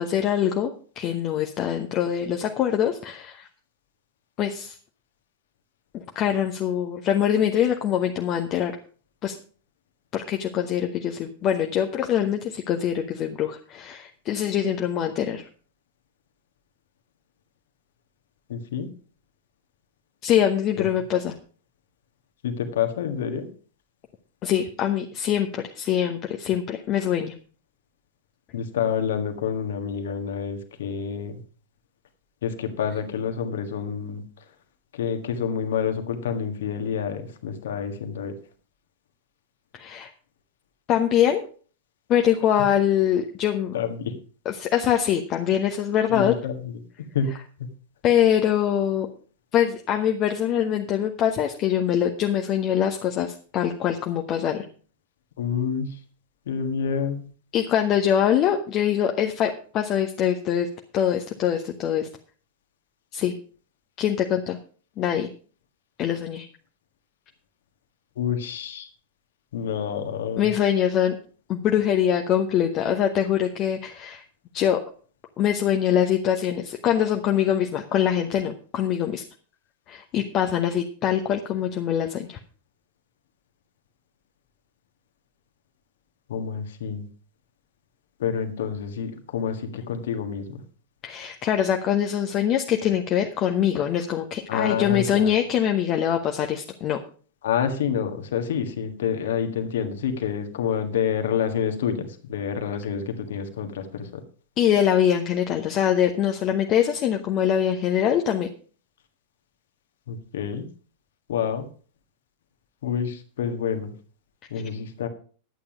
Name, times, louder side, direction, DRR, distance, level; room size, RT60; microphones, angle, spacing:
voice 1, 0.0-3.5 4.4-4.8 5.9-8.7 9.2-9.3 10.1-15.4 20.2-21.3 24.4-27.3 39.7-40.1 40.9-41.4 42.1-43.8 44.4-46.3 47.3-47.4 48.0-49.1 49.5-54.6 57.5-60.7 60.9-62.1 63.1-63.3 64.0-64.6 65.0-65.3 66.0-66.5 70.4-71.2 71.5-74.2 74.5-74.8 75.4-79.2 79.9-82.4 91.0-97.0 104.6-108.5, left 9 dB, 35° left, 4 dB, 0.9 m, -23 dB
voice 2, 18.5-18.9 20.8-20.9 22.4-23.5 28.5-31.3 32.4-34.2 34.9-38.3 43.7-44.1 46.1-46.6 47.0-47.3 47.6-47.7 55.4-55.9 56.5-57.2 68.2-68.9 69.5-70.5 86.3-87.0 88.2-90.6 94.5-95.4 97.4-104.2 110.1-110.6 111.3-111.7 112.8-113.9 114.5-115.1, left 7 dB, 60° left, 7 dB, 1.6 m, -28 dB
11.5 x 8.8 x 5.0 m, 0.42 s
figure-of-eight pair, 90°, 0 cm